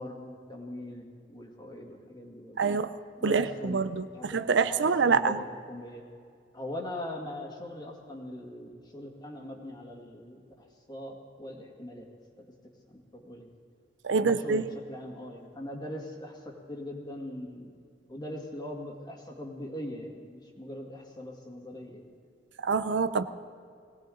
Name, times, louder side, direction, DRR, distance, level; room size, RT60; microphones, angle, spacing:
voice 1, 0.0-2.6 3.2-3.8 4.1-6.0 6.5-12.1 12.4-12.5 12.9-13.5 14.2-17.8 18.1-22.1, left 1 dB, 25° left, 1 dB, 2.1 m, -41 dB
voice 2, 2.6-2.9 3.2-5.4 14.0-14.6 22.6-23.2, right 5 dB, 80° right, 12 dB, 0.6 m, -26 dB
21.0 x 17.5 x 3.9 m, 2.3 s
head